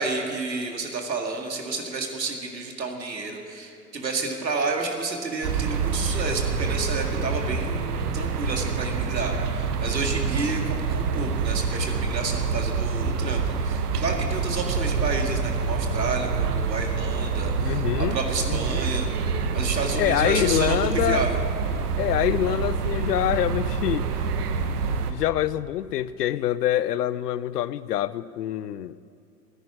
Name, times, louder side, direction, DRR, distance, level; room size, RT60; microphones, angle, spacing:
voice 1, 0.0-19.1 19.5-21.4, right 3 dB, 85° right, 2 dB, 2.1 m, -30 dB
sound 1, 5.4-25.1, right 5 dB, 65° right, 1.3 m, -26 dB
voice 2, 17.6-18.2 18.4-18.8 19.9-21.2 22.0-24.1 25.1-28.9, left 12 dB, 70° left, 18 dB, 0.7 m, -25 dB
14.0 x 10.0 x 9.6 m, 2.4 s
figure-of-eight pair, 90°, 49 cm